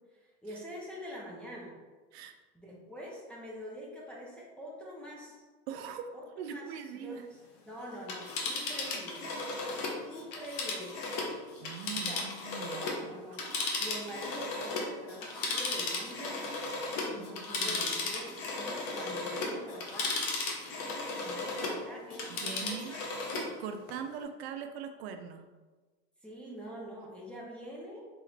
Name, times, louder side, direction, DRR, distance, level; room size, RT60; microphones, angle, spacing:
voice 1, 0.1-1.8 2.5-5.4 6.1-7.4 7.6-9.3 9.7-11.0 11.9-12.3 12.7-13.4 13.8-16.5 17.1-20.2 21.1-23.1 26.2-28.1, equal, 5° left, -5 dB, 0.5 m, -45 dB
voice 2, 5.7-7.2 11.6-13.0 13.3-13.5 17.2-17.8 22.3-22.9 23.3-25.4, right 7 dB, 75° right, 7 dB, 0.5 m, -42 dB
Telephone, 8.0-13.0 13.3-21.8 22.1-23.5 23.9-24.0, left 3 dB, 45° left, 0.8 m, -35 dB
3.9 x 2.8 x 3.2 m, 1.3 s
supercardioid pair, 155°, 32 cm